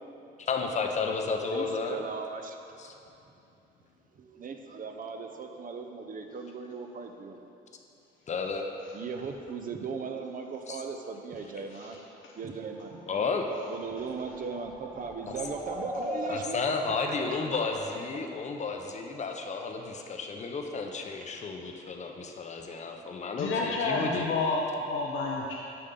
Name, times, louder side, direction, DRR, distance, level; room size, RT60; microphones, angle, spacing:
voice 1, 0.4-2.0 2.8-2.9 8.3-8.7 10.7-10.8 13.1-13.5 15.3-15.4 16.3-24.3, left 4 dB, 35° left, 3 dB, 0.6 m, -32 dB
voice 2, 1.5-2.6 4.2-7.4 8.9-12.0 12.4-13.0 13.7-17.7, right 5 dB, 45° right, 5 dB, 0.6 m, -38 dB
sound 1, 12.7-18.5, equal, 5° right, 0.6 m, -41 dB
voice 3, 23.4-25.5, left 3 dB, 75° left, -2 dB, 0.6 m, -29 dB
6.7 x 5.4 x 3.8 m, 2.8 s
cardioid pair, 90°, 20 cm